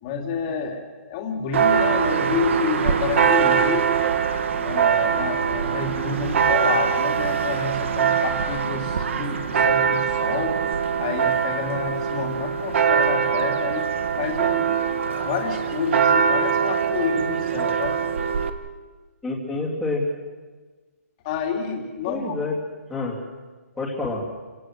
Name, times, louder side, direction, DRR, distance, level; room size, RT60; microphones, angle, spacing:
voice 1, 0.0-4.0 4.6-10.6 11.0-13.9 14.2-14.8 15.2-18.0 21.2-22.3, left 5 dB, 25° left, 3 dB, 2.7 m, -29 dB
Church bell, 1.5-18.5, right 7 dB, 50° right, 1.6 m, -22 dB
voice 2, 19.2-20.0 22.1-22.5 22.9-23.1 23.8-24.2, left 3 dB, ahead, -6 dB, 3.0 m, -27 dB
29.0 x 17.5 x 6.4 m, 1.3 s
hypercardioid pair, 170°, 9 cm